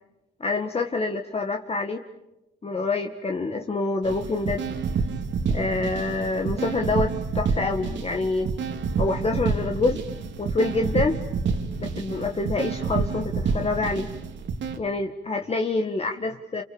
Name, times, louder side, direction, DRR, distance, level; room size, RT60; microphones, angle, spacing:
voice 1, 0.4-2.0 2.6-4.6 5.5-8.5 9.0-10.0 10.4-11.2 11.8-14.1 14.8-16.6, left 3 dB, 30° left, 3 dB, 2.0 m, -26 dB
sound 1, 4.0-14.8, right 5 dB, 65° right, 2.9 m, -28 dB
29.5 x 28.5 x 7.1 m, 0.95 s
cardioid pair, 90°, 20 cm